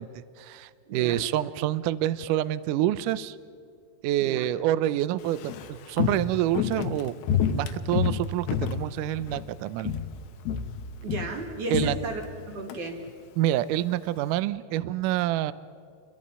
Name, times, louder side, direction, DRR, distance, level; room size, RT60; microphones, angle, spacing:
voice 1, 0.0-3.4 4.0-7.1 7.4-9.9 11.7-12.0 13.4-15.5, right 13 dB, 85° right, 16 dB, 1.8 m, -27 dB
voice 2, 0.9-1.2 4.2-4.5 11.0-12.2 12.5-13.0, right 3 dB, 55° right, 2 dB, 3.6 m, -34 dB
Walk footsteps, 5.2-9.5 9.8-10.2 10.5-12.8 13.1-13.2, left 8 dB, 80° left, 3.0 m, -29 dB
29.5 x 23.5 x 5.6 m, 2.3 s
omnidirectional pair, 4.5 m